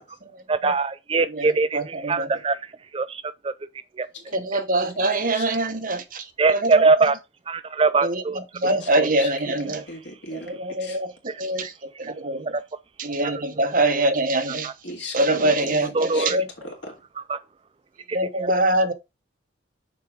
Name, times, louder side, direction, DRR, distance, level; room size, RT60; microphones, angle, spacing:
voice 1, 0.5-2.6 2.9-3.5 4.0-4.1 6.4-7.2 7.5-8.4 11.3-11.7 14.6-14.7 15.9-16.4 17.3-17.4 18.1-18.5, right 4 dB, 30° right, 0.4 m, -22 dB
voice 2, 1.3-2.3 4.3-7.1 8.0-9.8 10.3-11.7 12.0-12.5 13.0-14.7 15.1-16.5 18.1-18.9, right 1 dB, 45° right, 1.1 m, -24 dB
voice 3, 8.6-11.0 14.8-16.3 16.6-16.9, left 1 dB, 65° left, 2.6 m, -37 dB
6.6 x 4.5 x 5.1 m
head